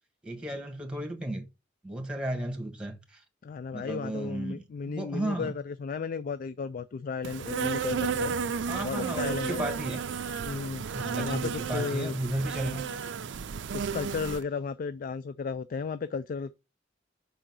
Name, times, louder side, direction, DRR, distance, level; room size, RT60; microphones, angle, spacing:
voice 1, 0.2-1.5 1.8-3.2 3.7-5.5 8.7-10.0 10.9-12.8, right 1 dB, 5° right, 1.3 m, -34 dB
voice 2, 3.4-8.3 8.8-9.6 10.4-10.8 11.1-12.1 12.6-12.9 13.7-16.6, left 5 dB, 45° left, 0.3 m, -34 dB
Insect, 7.2-14.4, right 6 dB, 70° right, 0.4 m, -33 dB
5.5 x 3.8 x 6.0 m
head